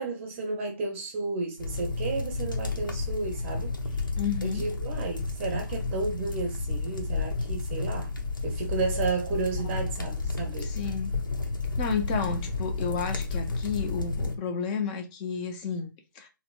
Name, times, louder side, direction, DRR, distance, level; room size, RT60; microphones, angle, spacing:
voice 1, 0.0-4.0 4.4-8.1 8.4-10.7, right 3 dB, 30° right, 0.6 m, -32 dB
sound 1, 1.6-14.3, left 3 dB, 80° left, 0.8 m, -31 dB
voice 2, 4.2-4.7 10.6-11.2 11.8-16.3, left 6 dB, 25° left, 0.5 m, -32 dB
4.1 x 2.0 x 2.4 m
figure-of-eight pair, 140°, 11 cm